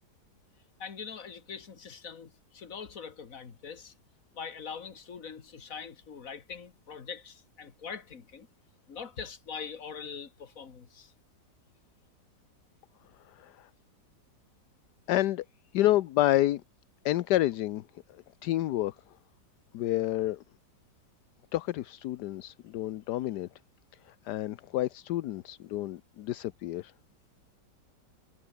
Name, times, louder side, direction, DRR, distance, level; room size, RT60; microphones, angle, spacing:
voice 1, 0.8-3.9 4.3-8.5 8.9-11.1, left 6 dB, 50° left, 2.2 m, -43 dB
voice 2, 13.3-13.7 15.1-15.4 15.7-16.6 17.0-17.8 18.4-18.9 19.7-20.4 21.5-23.5 24.1-26.9, left 14 dB, 75° left, 1.2 m, -29 dB
omnidirectional pair, 1.9 m